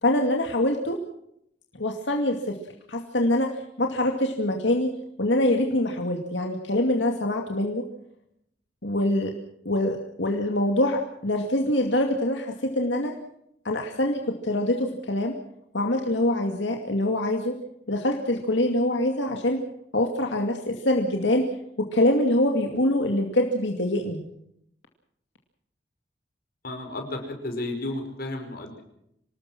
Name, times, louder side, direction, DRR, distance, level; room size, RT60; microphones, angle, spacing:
voice 1, 0.0-1.0 1.8-2.6 2.9-3.5 3.8-4.9 5.2-7.8 8.8-9.3 9.6-12.5 12.8-13.1 13.6-15.3 15.7-17.5 17.9-19.6 19.9-21.4 21.8-24.2, left 1 dB, 85° left, 2 dB, 2.4 m, -24 dB
voice 2, 26.6-28.8, left 2 dB, 55° left, 4 dB, 5.4 m, -33 dB
26.5 x 19.0 x 6.1 m, 0.74 s
head